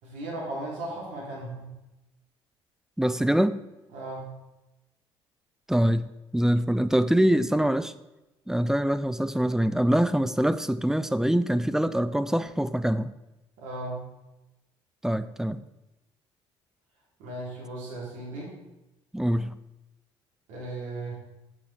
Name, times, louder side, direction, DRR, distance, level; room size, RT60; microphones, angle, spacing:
voice 1, 0.0-1.7 3.9-4.3 13.6-14.0 17.2-18.5 20.5-21.2, right 2 dB, 60° right, -4 dB, 2.9 m, -36 dB
voice 2, 3.0-3.6 5.7-7.9 8.5-13.1 15.0-15.6 19.1-19.6, right 1 dB, 5° right, 13 dB, 0.4 m, -24 dB
7.3 x 6.2 x 4.5 m, 0.98 s
figure-of-eight pair, 50°, 14 cm